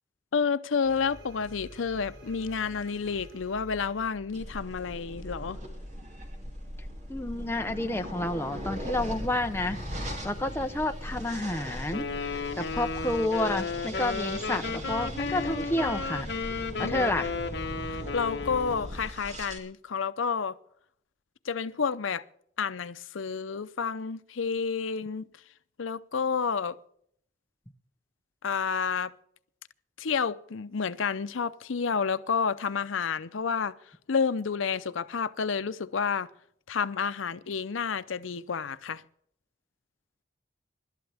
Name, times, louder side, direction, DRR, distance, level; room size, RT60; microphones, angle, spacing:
voice 1, 0.3-5.6 16.8-17.0 17.9-20.6 21.4-22.2 22.6-25.3 25.8-26.8 28.4-29.1 30.0-33.7 34.1-36.3 36.7-39.0, left 5 dB, 85° left, 0.6 m, -30 dB
sound 1, 0.8-13.1, equal, 65° right, 4.7 m, -49 dB
sound 2, 4.3-19.6, equal, 35° right, 2.6 m, -39 dB
voice 2, 7.1-16.3 16.8-17.3, left 1 dB, 10° left, 0.7 m, -30 dB
Wind instrument woodwind instrument, 11.9-18.9, left 4 dB, 60° left, 1.3 m, -34 dB
25.0 x 12.0 x 3.5 m
head